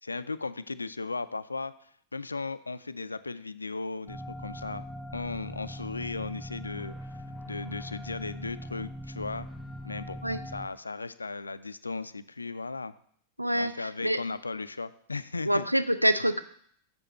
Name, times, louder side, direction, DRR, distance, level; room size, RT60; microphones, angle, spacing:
voice 1, 0.0-4.9 5.1-6.9 7.5-9.5 9.8-10.2 10.4-12.9 13.5-15.7, left 3 dB, 80° left, 14 dB, 0.3 m, -36 dB
Creepy background track, 4.1-10.7, equal, 5° right, 0.9 m, -41 dB
voice 2, 13.4-14.2 15.5-16.4, equal, 90° right, 12 dB, 0.4 m, -26 dB
7.0 x 6.8 x 4.3 m, 0.64 s
figure-of-eight pair, 90°, 0 cm